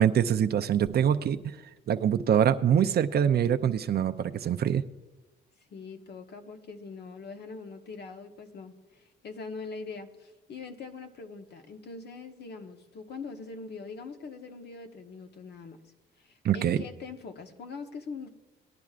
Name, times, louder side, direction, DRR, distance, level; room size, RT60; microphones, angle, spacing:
voice 1, 0.0-1.6 1.9-4.8 16.4-16.8, right 9 dB, 55° right, 8 dB, 0.6 m, -24 dB
voice 2, 5.7-15.8 16.2-18.3, left 4 dB, 55° left, 5 dB, 1.2 m, -42 dB
19.0 x 10.5 x 2.5 m, 1.1 s
cardioid pair, 90°, 20 cm